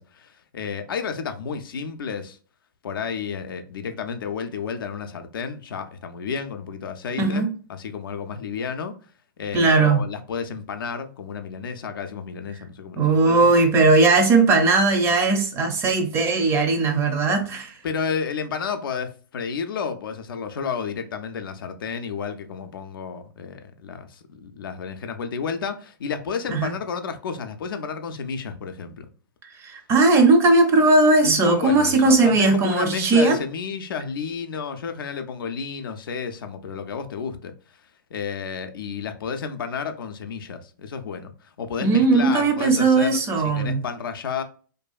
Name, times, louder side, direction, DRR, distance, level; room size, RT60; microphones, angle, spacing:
voice 1, 0.0-2.4 2.8-8.9 9.4-13.5 17.8-29.1 31.2-37.5 38.1-44.4, left 6 dB, 75° left, 0.4 m, -31 dB
voice 2, 7.2-7.5 9.5-10.0 13.0-17.7 26.5-26.7 29.6-33.4 41.8-43.8, right 3 dB, 20° right, 0.4 m, -18 dB
2.6 x 2.2 x 2.3 m
hypercardioid pair, 125°, 12 cm